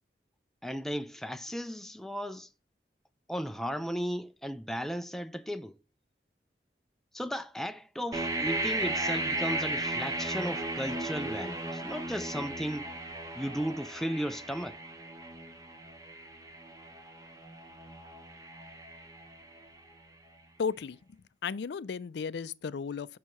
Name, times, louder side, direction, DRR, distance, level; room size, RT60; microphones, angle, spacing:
voice 1, 0.6-2.5 3.3-5.8 7.1-12.9 13.4-14.8, equal, ahead, 0.3 m, -35 dB
sound 1, 8.1-19.9, right 2 dB, 20° right, 0.9 m, -36 dB
voice 2, 20.6-21.0 21.4-23.2, left 6 dB, 75° left, 0.4 m, -34 dB
6.4 x 4.6 x 5.6 m
head